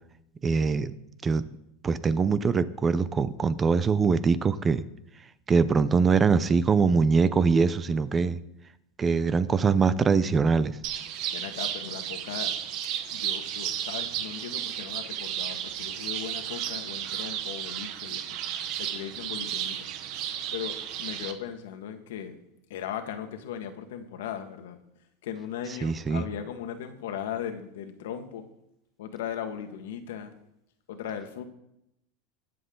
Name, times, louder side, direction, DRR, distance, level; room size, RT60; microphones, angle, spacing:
voice 1, 0.4-0.9 1.2-1.4 1.8-4.8 5.5-8.4 9.0-10.8 25.8-26.3, right 5 dB, 20° right, 15 dB, 0.6 m, -23 dB
sound 1, 10.8-21.3, right 10 dB, 50° right, 1.2 m, -33 dB
voice 2, 11.3-12.5 13.1-18.4 18.8-19.9 20.5-22.4 22.7-24.8 25.2-28.5 29.0-30.3 30.9-31.4, left 9 dB, 85° left, 6 dB, 1.6 m, -38 dB
22.0 x 7.8 x 3.9 m, 0.82 s
supercardioid pair, 140°, 0 cm